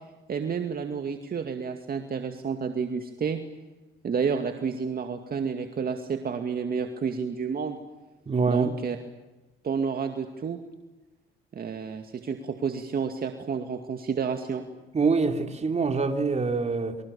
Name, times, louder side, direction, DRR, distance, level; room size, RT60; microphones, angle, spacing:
voice 1, 0.3-3.4 4.0-7.8 8.5-9.0 9.6-10.6 11.5-14.6, right 6 dB, 50° right, 6 dB, 2.4 m, -30 dB
voice 2, 8.2-8.7 14.9-17.0, right 4 dB, 35° right, 6 dB, 3.5 m, -25 dB
30.0 x 25.0 x 7.2 m, 1.1 s
cardioid pair, 90°, 20 cm